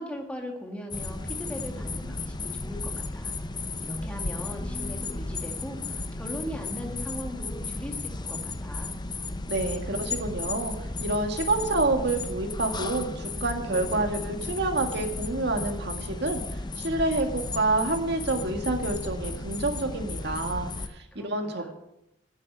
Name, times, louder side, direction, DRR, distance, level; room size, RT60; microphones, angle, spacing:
voice 1, 0.0-3.3 3.8-8.9 21.1-21.7, equal, 5° left, 2 dB, 2.2 m, -39 dB
sound 1, 0.9-20.9, left 3 dB, 25° left, 0.7 m, -34 dB
voice 2, 9.5-10.7 11.0-21.7, right 2 dB, 65° right, 4 dB, 1.9 m, -28 dB
10.5 x 8.4 x 8.7 m, 0.88 s
head